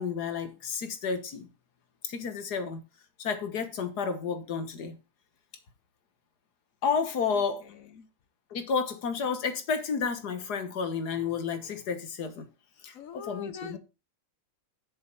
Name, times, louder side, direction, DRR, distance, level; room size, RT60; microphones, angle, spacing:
voice 1, 0.0-1.5 2.0-2.8 3.2-5.0 6.8-7.7 8.5-12.5 12.8-13.8, left 5 dB, 80° left, 1.9 m, -31 dB
voice 2, 7.3-8.1 12.9-13.8, left 6 dB, 65° left, 1.1 m, -44 dB
7.4 x 6.7 x 4.5 m
omnidirectional pair, 1.7 m